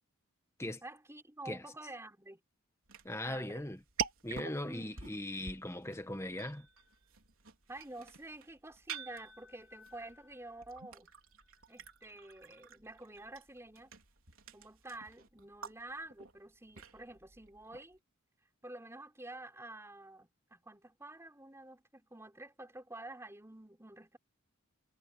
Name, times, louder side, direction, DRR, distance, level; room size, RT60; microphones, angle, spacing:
voice 1, 0.8-2.4 3.2-3.7 4.6-5.4 7.7-11.1 11.7-13.9 14.5-18.0 18.6-24.2, right 2 dB, 10° right, 4.8 m, -49 dB
sound 1, 2.8-18.0, right 6 dB, 70° right, 4.0 m, -47 dB
voice 2, 3.0-3.8 4.2-6.7, left 1 dB, 15° left, 1.7 m, -39 dB
head